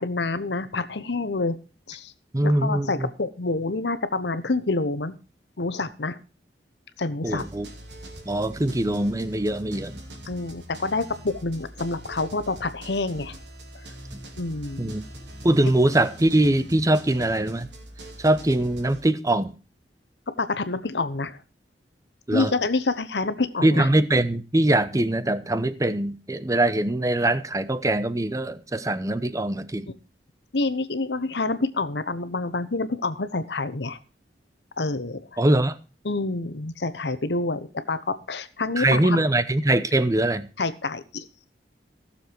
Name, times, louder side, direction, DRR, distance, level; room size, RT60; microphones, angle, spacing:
voice 1, 0.0-1.6 1.9-2.1 2.4-5.1 5.6-6.2 7.0-7.4 10.3-13.4 14.4-15.0 20.4-21.4 22.3-23.9 30.5-34.0 34.8-35.2 36.0-39.2 40.6-41.3, left 3 dB, 75° left, 1.0 m, -27 dB
voice 2, 2.3-3.1 7.2-7.7 8.3-10.0 14.8-15.0 15.4-17.7 18.2-19.5 22.3-22.5 23.6-29.9 35.4-35.8 38.8-40.5, right 1 dB, 20° right, 0.8 m, -22 dB
sound 1, 7.2-19.0, right 1 dB, 85° right, 2.8 m, -43 dB
16.0 x 7.0 x 4.6 m
head